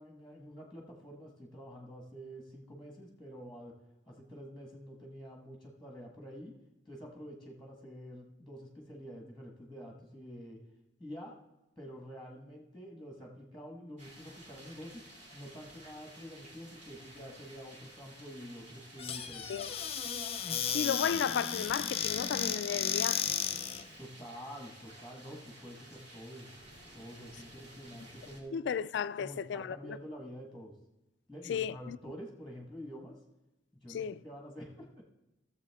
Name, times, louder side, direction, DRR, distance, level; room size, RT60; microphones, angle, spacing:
voice 1, 0.0-3.7 4.1-6.5 6.9-10.6 11.0-11.3 11.8-15.0 15.3-19.5 24.0-26.5 26.9-28.6 29.2-30.7 31.3-33.2 33.8-35.0, equal, ahead, 1.4 m, -47 dB
sound 1, 14.0-28.4, right 1 dB, 40° right, 2.9 m, -54 dB
Squeak / Cupboard open or close, 19.0-23.9, left 8 dB, 35° left, 0.6 m, -34 dB
voice 2, 20.7-23.3 28.5-30.0 31.5-32.0 33.9-34.2, left 7 dB, 70° left, 0.3 m, -34 dB
15.0 x 7.3 x 3.5 m
head